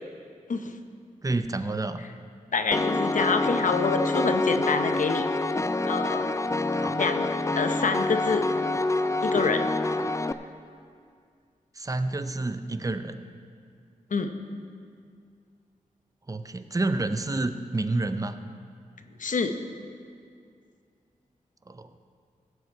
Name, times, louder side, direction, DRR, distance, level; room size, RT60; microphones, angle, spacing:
voice 1, 1.2-2.0 6.7-7.0 11.8-13.2 16.3-18.4 21.7-21.9, right 2 dB, 25° right, 10 dB, 0.6 m, -29 dB
voice 2, 2.5-5.3 5.8-6.3 6.9-7.3 7.6-8.4 9.2-9.7 14.1-14.3 19.2-19.5, left 4 dB, 65° left, 7 dB, 0.8 m, -26 dB
Piano, 2.7-10.3, left 2 dB, 20° left, 0.4 m, -26 dB
15.5 x 7.9 x 4.5 m, 2.2 s
cardioid pair, 60°, 14 cm